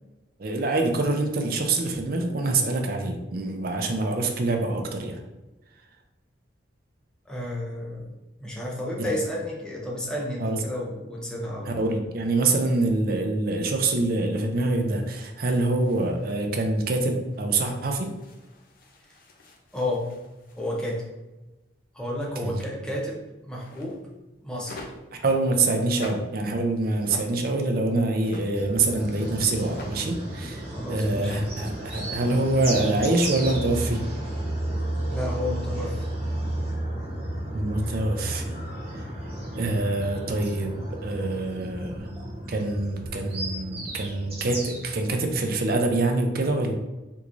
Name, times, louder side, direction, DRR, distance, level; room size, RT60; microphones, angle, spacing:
voice 1, 0.4-5.2 9.0-9.2 10.4-10.6 11.7-18.1 22.4-22.6 25.2-34.0 37.5-38.5 39.5-40.7 41.0-42.1 42.5-46.7, right 2 dB, 50° right, 4 dB, 0.5 m, -25 dB
voice 2, 7.3-8.1 8.4-11.8 19.7-20.1 20.6-21.1 21.9-24.1 24.4-24.9 30.7-31.4 35.1-36.1, left 1 dB, 5° left, -4 dB, 0.6 m, -31 dB
sound 1, 14.4-17.0 17.3-21.1 23.5-24.1 24.6-25.2 25.7-26.5 26.8-27.6 28.0-28.6 29.5-30.4 31.1-31.5 31.9-32.0 32.3-32.5, left 2 dB, 50° left, 0.4 m, -47 dB
sound 2, 28.5-45.3, right 1 dB, 30° right, 1.1 m, -33 dB
3.5 x 3.0 x 2.5 m, 1.1 s
head